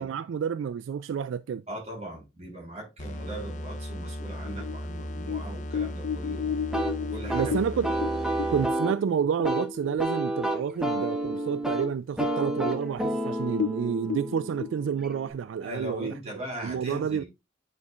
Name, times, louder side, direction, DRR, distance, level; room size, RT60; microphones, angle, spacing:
voice 1, 0.0-1.6 7.3-7.9 8.5-16.1 16.6-17.2, right 7 dB, 75° right, 0.3 m, -29 dB
voice 2, 1.7-6.5 7.0-7.6 15.6-17.3, right 1 dB, 35° right, 3.7 m, -39 dB
sound 1, 3.0-8.9, equal, 40° left, 0.9 m, -37 dB
sound 2, 4.2-10.1 10.4-10.5 10.9-11.4 11.8-11.9 12.6-12.7 13.0-13.1 13.5-14.7, left 7 dB, 85° left, 0.4 m, -34 dB
sound 3, 6.7-15.3, right 1 dB, 5° right, 1.1 m, -30 dB
9.5 x 4.5 x 2.4 m
head